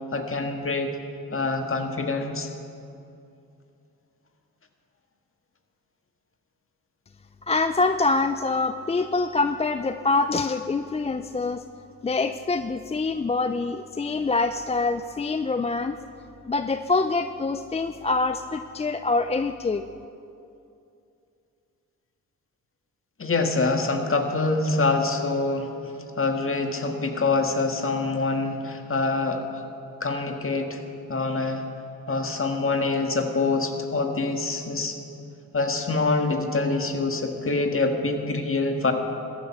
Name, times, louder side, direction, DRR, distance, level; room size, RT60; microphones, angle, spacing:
voice 1, 0.1-0.9 1.3-2.5 23.2-29.4 30.0-30.8 31.1-31.6 32.1-35.0 35.5-38.9, left 3 dB, 35° left, 4 dB, 1.8 m, -25 dB
voice 2, 7.5-11.6 12.0-16.0 16.5-19.9, left 3 dB, 15° left, 10 dB, 0.4 m, -25 dB
14.5 x 10.5 x 5.7 m, 2.6 s
supercardioid pair, 50°, 38 cm